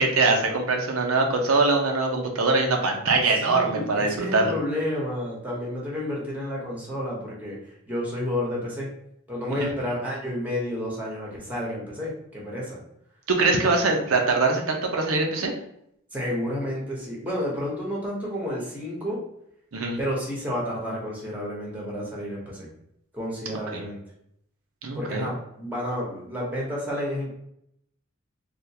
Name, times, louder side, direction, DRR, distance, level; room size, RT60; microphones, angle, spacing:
voice 1, 0.0-4.5 9.5-9.7 13.3-15.5 19.7-20.0 23.7-23.8 24.8-25.3, right 3 dB, 80° right, 2 dB, 0.7 m, -23 dB
voice 2, 3.3-7.6 7.9-8.9 9.3-12.8 16.1-19.2 20.0-22.7 23.1-24.0 24.9-27.3, left 1 dB, 10° right, -4 dB, 0.9 m, -30 dB
3.5 x 2.5 x 2.8 m, 0.75 s
head